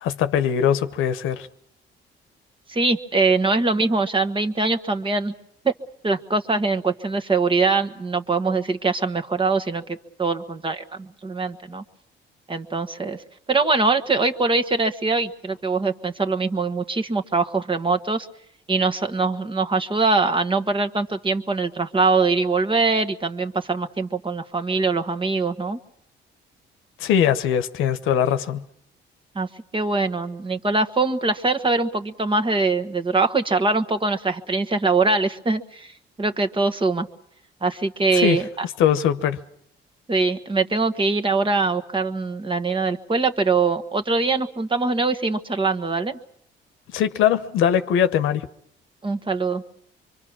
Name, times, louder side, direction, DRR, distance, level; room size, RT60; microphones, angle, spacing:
voice 1, 0.0-1.5 27.0-28.6 38.1-38.4 38.8-39.4 46.9-48.5, left 9 dB, 90° left, 1.0 m, -21 dB
voice 2, 2.7-5.3 5.6-5.7 6.0-11.8 12.5-13.2 13.5-18.3 18.7-25.8 29.3-29.5 29.7-37.1 37.6-38.6 40.1-46.2 49.0-49.6, right 3 dB, 25° right, 1.4 m, -23 dB
24.5 x 24.5 x 6.1 m
cardioid pair, 90°, 20 cm